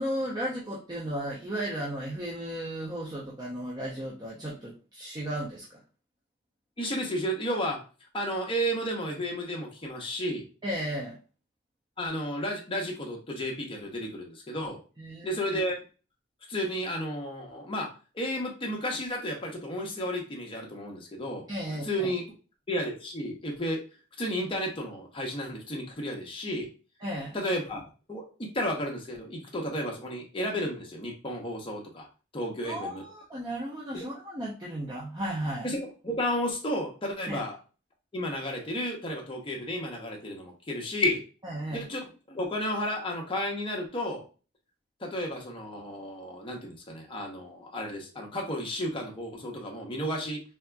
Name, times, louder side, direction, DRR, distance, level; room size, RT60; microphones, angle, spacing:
voice 1, 0.0-5.8 10.6-11.2 15.0-15.3 21.5-22.1 27.0-27.3 32.6-35.7 37.3-37.4 41.4-41.8, right 1 dB, 20° right, -4 dB, 0.5 m, -34 dB
voice 2, 6.8-7.8 8.1-10.4 12.0-14.8 15.2-15.8 16.5-17.9 18.1-21.5 21.8-22.2 22.7-23.8 24.2-26.7 27.3-32.1 32.3-33.0 33.9-34.1 35.6-37.6 38.1-41.2 41.7-44.2 45.0-50.4, equal, 25° left, 0 dB, 0.7 m, -32 dB
3.4 x 2.7 x 2.2 m, 0.34 s
head